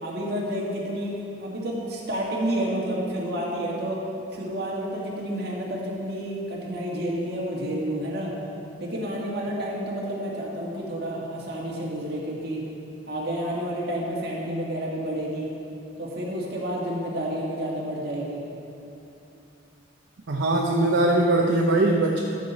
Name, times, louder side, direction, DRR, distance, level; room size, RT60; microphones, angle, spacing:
voice 1, 0.0-4.0 4.3-8.3 8.8-12.7 13.1-15.5 16.0-18.4, right 1 dB, 55° right, -4 dB, 1.9 m, -30 dB
voice 2, 20.3-22.2, right 2 dB, 75° right, 0 dB, 0.7 m, -21 dB
13.5 x 6.6 x 4.1 m, 2.8 s
head